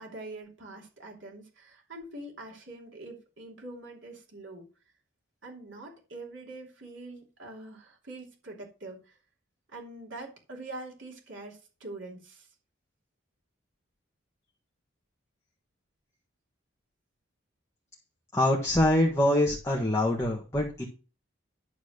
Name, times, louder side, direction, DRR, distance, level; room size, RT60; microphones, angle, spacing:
voice 1, 0.0-4.7 5.4-9.2 9.7-12.5, right 2 dB, 65° right, -1 dB, 2.9 m, -44 dB
voice 2, 18.3-20.8, left 1 dB, 15° left, -2 dB, 1.5 m, -24 dB
11.5 x 4.1 x 6.6 m, 0.33 s
head